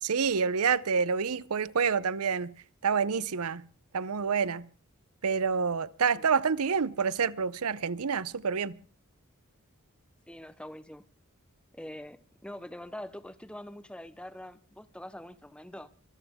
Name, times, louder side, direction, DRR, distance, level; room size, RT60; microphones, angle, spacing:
voice 1, 0.0-2.5 2.8-3.6 3.9-4.6 5.2-8.8, right 6 dB, 85° right, 0.7 m, -28 dB
voice 2, 10.3-11.0 11.7-15.9, left 1 dB, 5° left, 0.7 m, -44 dB
25.0 x 14.0 x 3.6 m
head